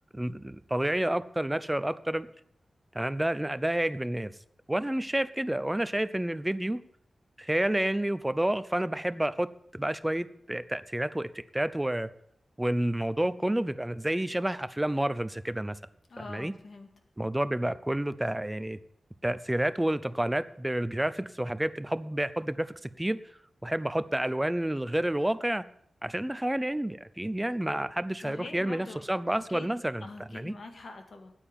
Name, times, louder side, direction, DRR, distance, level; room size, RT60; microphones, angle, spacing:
voice 1, 0.1-2.3 2.9-4.3 4.7-6.8 7.4-12.1 12.6-15.8 16.2-16.5 17.2-18.8 19.2-23.2 23.6-25.7 26.0-30.5, right 1 dB, 10° right, 15 dB, 0.5 m, -29 dB
voice 2, 16.1-16.9 28.2-29.2 29.5-29.7 30.0-31.3, left 3 dB, 55° left, 5 dB, 2.0 m, -44 dB
9.0 x 8.9 x 9.0 m, 0.72 s
wide cardioid pair, 150°, 0 cm